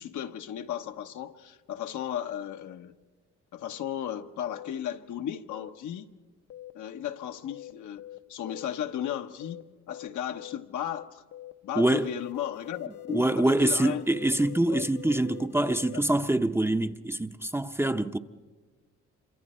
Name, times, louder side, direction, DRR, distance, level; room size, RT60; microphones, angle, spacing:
voice 1, 0.0-2.9 3.5-6.1 6.7-8.0 8.3-9.6 9.9-11.2 11.6-14.0 14.7-14.9 15.9-16.0, left 10 dB, 75° left, 1.1 m, -35 dB
sound 1, 4.5-4.7 5.5-5.7 6.5-6.7 7.5-7.7 8.0-8.2 8.5-8.7 8.9-9.1 9.4-9.6 9.9-10.1 10.4-10.6 10.8-11.0 11.3-11.5 11.8-16.0, left 13 dB, 50° left, 0.6 m, -44 dB
voice 2, 11.8-12.1 13.1-18.2, right 1 dB, 10° right, 0.6 m, -25 dB
27.0 x 25.0 x 4.3 m
cardioid pair, 90°, 30 cm